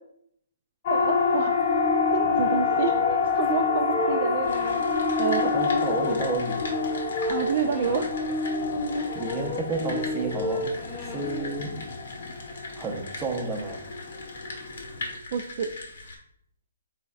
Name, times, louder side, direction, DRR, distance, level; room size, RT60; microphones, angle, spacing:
Siren, 0.9-15.2, left 5 dB, 45° left, 0.5 m, -28 dB
voice 1, 0.9-1.5 2.1-3.0 3.3-4.5 5.2-5.5 7.3-8.1 15.3-15.7, right 7 dB, 45° right, 5 dB, 0.3 m, -28 dB
sound 1, 1.6-11.4, left 1 dB, 25° left, 0.8 m, -31 dB
sound 2, 4.4-16.2, left 2 dB, 65° left, 1.0 m, -41 dB
voice 2, 5.4-6.6 9.1-10.7 11.1-11.8 12.8-13.9, right 3 dB, 15° right, 1 dB, 0.7 m, -31 dB
4.1 x 4.0 x 2.3 m, 0.70 s
hypercardioid pair, 145°, 0 cm